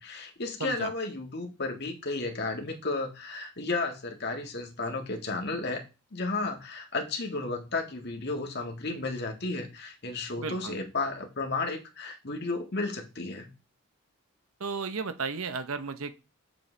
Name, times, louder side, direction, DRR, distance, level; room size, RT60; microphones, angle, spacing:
voice 1, 0.0-5.8 6.1-13.5, left 3 dB, 50° left, 2 dB, 1.7 m, -33 dB
voice 2, 0.6-0.9 10.4-10.8 14.6-16.1, right 4 dB, 75° right, 10 dB, 0.8 m, -34 dB
7.3 x 7.3 x 3.3 m, 0.29 s
head